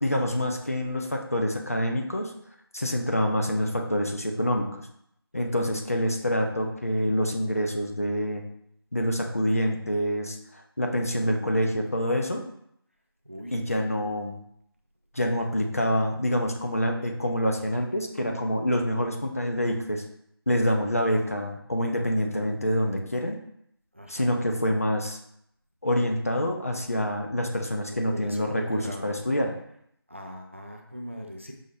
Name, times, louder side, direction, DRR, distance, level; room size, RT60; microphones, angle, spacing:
voice 1, 0.0-2.3 2.7-4.8 5.3-8.4 8.9-12.4 13.5-14.4 15.1-20.0 20.5-23.4 24.1-25.2 25.8-29.6, equal, 35° left, 2 dB, 0.4 m, -26 dB
voice 2, 11.1-11.6 13.2-13.6 23.9-24.4 27.9-29.2 30.1-31.5, equal, 30° right, 2 dB, 0.3 m, -41 dB
5.4 x 2.0 x 3.2 m, 0.72 s
figure-of-eight pair, 170°, 13 cm